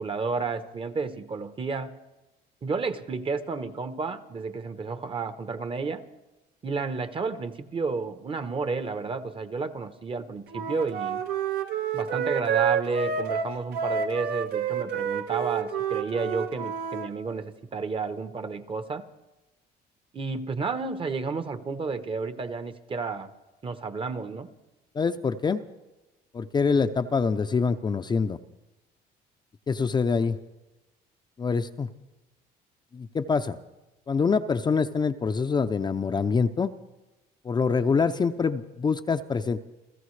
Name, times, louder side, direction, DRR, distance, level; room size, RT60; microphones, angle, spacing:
voice 1, 0.0-2.0 2.6-6.0 6.6-11.2 11.9-19.1 20.1-23.3 23.6-24.5, right 4 dB, 30° right, 11 dB, 1.0 m, -31 dB
Wind instrument woodwind instrument, 10.5-17.1, right 7 dB, 75° right, 1.3 m, -29 dB
voice 2, 24.9-25.6 26.3-28.4 29.7-30.4 31.4-31.9 32.9-33.6 34.1-36.7 37.4-39.6, left 5 dB, 25° left, 8 dB, 0.6 m, -25 dB
30.0 x 14.5 x 3.3 m, 1.0 s
cardioid pair, 110°, 17 cm